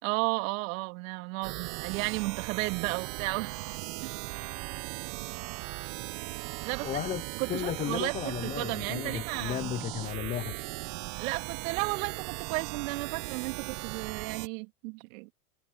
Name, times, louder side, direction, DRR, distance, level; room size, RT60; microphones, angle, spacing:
voice 1, 0.0-4.5 6.6-6.9 7.4-9.8 11.2-15.3, right 25 dB, 60° right, 2.6 m, -34 dB
sound 1, 1.4-14.5, right 27 dB, 45° right, 0.7 m, -38 dB
voice 2, 6.8-7.2 7.5-10.6, left 11 dB, 20° left, 0.4 m, -34 dB
hypercardioid pair, 95°, 44 cm